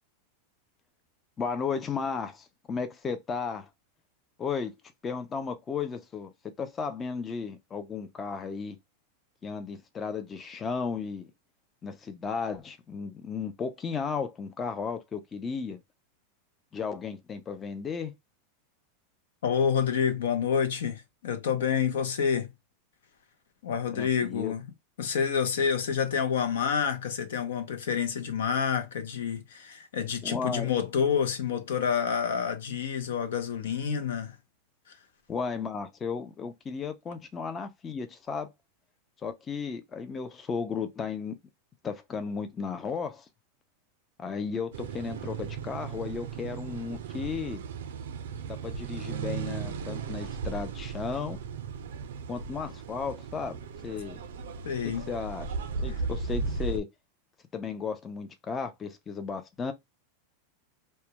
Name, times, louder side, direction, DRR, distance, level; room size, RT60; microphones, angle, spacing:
voice 1, 1.4-3.7 4.4-4.7 5.0-8.8 9.4-11.3 11.8-15.8 16.7-18.1 23.9-24.5 30.2-30.7 35.3-38.5 39.2-41.4 41.8-43.3 44.2-47.6 48.5-51.4 52.3-53.6 53.8-54.2 55.1-55.5 55.8-56.9 57.5-59.7, left 5 dB, 20° left, 0.4 m, -34 dB
voice 2, 19.4-22.5 23.6-24.6 25.0-34.4 54.6-55.1 55.9-56.0, left 7 dB, 85° left, 0.6 m, -28 dB
sound 1, 44.7-56.8, right 5 dB, 85° right, 0.4 m, -36 dB
2.2 x 2.1 x 2.8 m
supercardioid pair, 140°, 0 cm